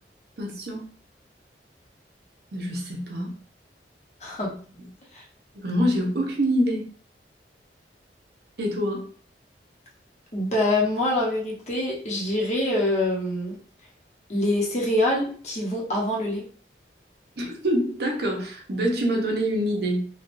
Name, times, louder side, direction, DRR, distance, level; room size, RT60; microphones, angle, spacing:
voice 1, 0.4-0.8 2.5-3.4 4.5-4.6 5.5-6.8 8.6-9.1 17.4-20.1, equal, 60° right, 0 dB, 0.8 m, -25 dB
voice 2, 10.3-13.6 14.3-16.4, left 1 dB, 40° left, -3 dB, 0.9 m, -25 dB
3.4 x 2.3 x 2.6 m, 0.43 s
head